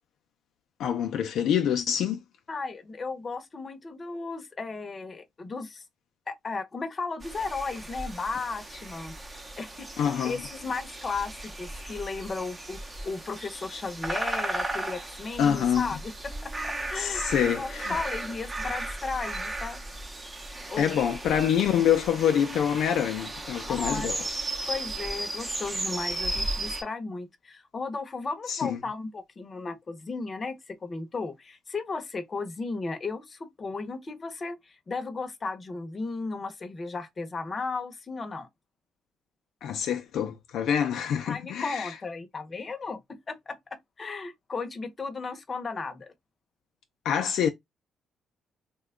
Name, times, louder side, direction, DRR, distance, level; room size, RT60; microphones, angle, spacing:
voice 1, 0.8-2.2 10.0-10.4 15.4-15.9 17.0-18.0 20.8-24.2 28.5-28.8 39.6-41.9 47.0-47.5, left 9 dB, 80° left, 0.4 m, -26 dB
voice 2, 2.5-5.8 6.3-9.1 9.6-19.8 20.7-20.9 23.7-24.1 24.7-38.5 41.2-43.6 44.0-46.1, left 4 dB, 35° left, 0.7 m, -35 dB
sound 1, 7.2-26.8, right 2 dB, 25° right, 0.7 m, -35 dB
2.9 x 2.2 x 3.6 m
cardioid pair, 90°, 0 cm